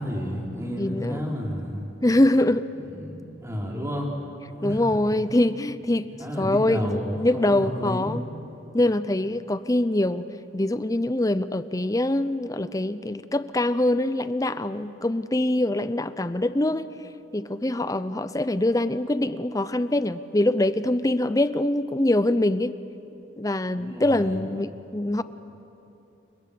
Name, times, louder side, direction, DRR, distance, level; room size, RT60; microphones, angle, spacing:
voice 1, 0.0-1.9 2.8-4.1 4.5-4.9 6.2-8.2 23.8-24.4, equal, 15° right, -2 dB, 4.2 m, -31 dB
voice 2, 0.8-1.3 2.0-2.7 4.6-6.1 6.4-8.2 8.7-10.2 10.5-16.9 17.3-22.7 23.4-25.2, left 1 dB, 15° left, 13 dB, 0.5 m, -24 dB
30.0 x 24.5 x 6.8 m, 2.9 s
head